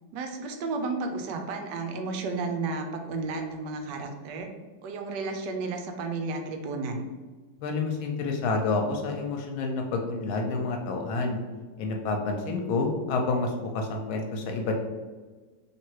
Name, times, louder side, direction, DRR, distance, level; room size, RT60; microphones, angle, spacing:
voice 1, 0.1-4.5 4.8-7.1, right 3 dB, 75° right, 4 dB, 1.0 m, -32 dB
voice 2, 7.6-11.4 11.8-14.8, left 3 dB, 85° left, 2 dB, 1.4 m, -29 dB
3.1 x 2.9 x 4.5 m, 1.3 s
omnidirectional pair, 2.2 m